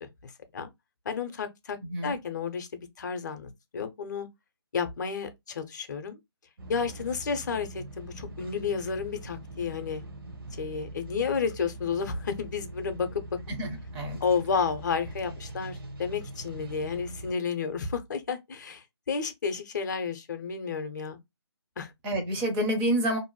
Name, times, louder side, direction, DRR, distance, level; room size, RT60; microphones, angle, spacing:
voice 1, 0.0-0.7 1.1-4.3 4.7-6.2 6.7-10.0 10.6-13.2 14.2-21.2 21.8-21.9, left 5 dB, 45° left, 0.6 m, -31 dB
voice 2, 1.8-2.2 13.5-14.2 22.0-23.2, equal, 10° right, 0.5 m, -28 dB
sound 1, 6.6-17.3, right 2 dB, 55° right, 0.8 m, -42 dB
2.6 x 2.1 x 2.9 m
figure-of-eight pair, 155°, 14 cm